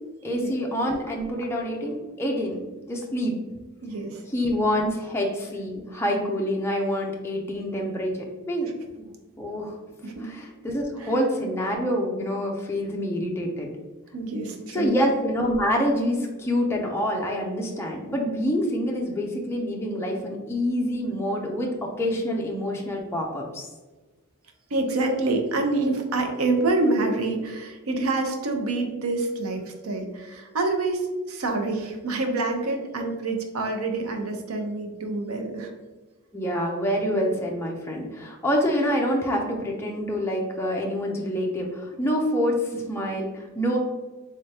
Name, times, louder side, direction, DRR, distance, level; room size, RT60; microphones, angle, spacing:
voice 1, 0.2-2.6 2.9-3.3 4.3-8.7 9.0-9.1 9.4-9.8 10.2-13.7 14.7-23.7 36.3-43.8, equal, 10° left, -1 dB, 0.5 m, -26 dB
voice 2, 3.8-4.2 10.0-10.3 11.0-11.1 14.1-15.0 24.7-35.7, right 2 dB, 90° right, 4 dB, 0.6 m, -27 dB
3.6 x 3.4 x 2.8 m, 1.2 s
head